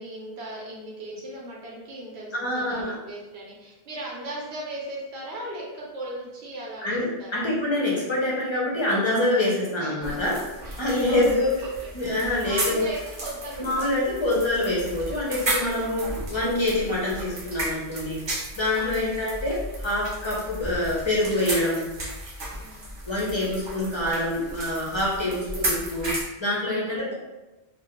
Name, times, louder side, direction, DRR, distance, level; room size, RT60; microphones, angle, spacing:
voice 1, 0.0-7.4 9.8-10.8 11.1-11.9 12.4-13.9 18.8-19.0 22.6-22.9 25.2-25.7 26.8-27.1, right 1 dB, 85° right, -4 dB, 0.9 m, -38 dB
voice 2, 2.3-3.0 6.8-10.4 10.8-11.6 11.9-12.8 13.6-18.2 18.5-21.9 23.0-27.1, left 1 dB, 40° left, -5 dB, 0.4 m, -26 dB
sound 1, 10.0-26.2, right 1 dB, 40° right, 0.4 m, -34 dB
2.4 x 2.1 x 2.8 m, 1.1 s
omnidirectional pair, 1.1 m